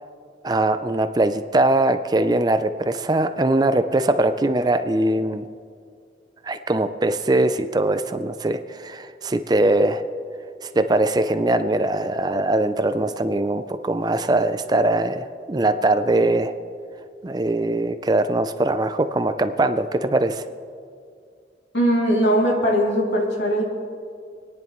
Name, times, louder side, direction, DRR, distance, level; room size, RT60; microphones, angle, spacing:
voice 1, 0.4-5.5 6.4-10.0 10.6-16.5 17.2-20.4, right 2 dB, 20° right, 10 dB, 0.4 m, -21 dB
voice 2, 21.7-23.6, equal, 75° left, -2 dB, 2.8 m, -20 dB
26.5 x 10.0 x 3.1 m, 2.2 s
head